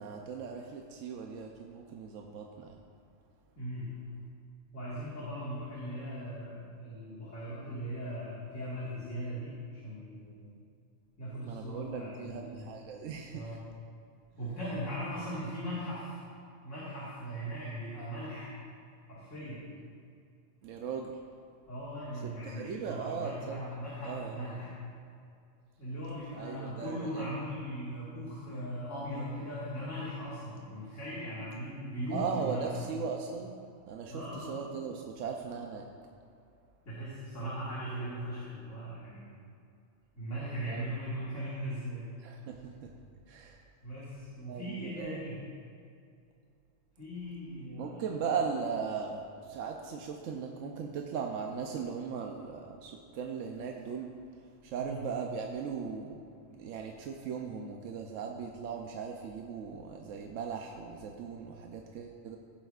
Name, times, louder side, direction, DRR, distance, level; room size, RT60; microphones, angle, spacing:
voice 1, 0.0-2.8 11.5-13.6 20.6-21.1 22.2-23.6 24.0-24.3 26.3-27.3 32.1-33.5 33.9-35.9 40.7-40.9 42.2-42.9 43.3-43.6 44.5-45.3 47.8-54.1 54.4-56.2 56.5-62.4, right 6 dB, 70° right, 2 dB, 1.0 m, -38 dB
voice 2, 3.6-4.0 4.7-10.6 11.2-12.7 13.3-13.6 14.4-16.2 16.6-18.5 19.1-19.7 21.7-24.8 25.8-32.7 34.1-34.6 36.9-39.3 40.1-42.0 43.8-45.4 47.0-48.0 54.8-55.0, equal, 65° left, -9 dB, 2.2 m, -39 dB
15.5 x 7.8 x 2.4 m, 2.4 s
omnidirectional pair, 1.4 m